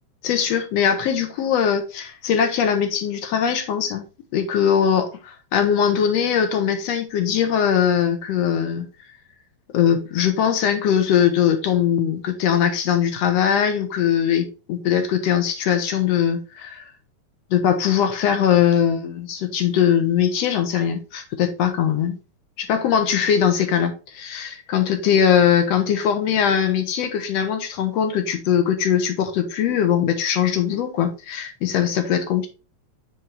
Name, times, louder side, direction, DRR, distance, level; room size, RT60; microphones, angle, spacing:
voice 1, 0.2-4.0 4.3-8.9 9.7-16.9 17.5-22.2 22.6-32.5, left 8 dB, 70° left, 1.9 m, -21 dB
5.7 x 5.4 x 3.4 m
omnidirectional pair, 3.4 m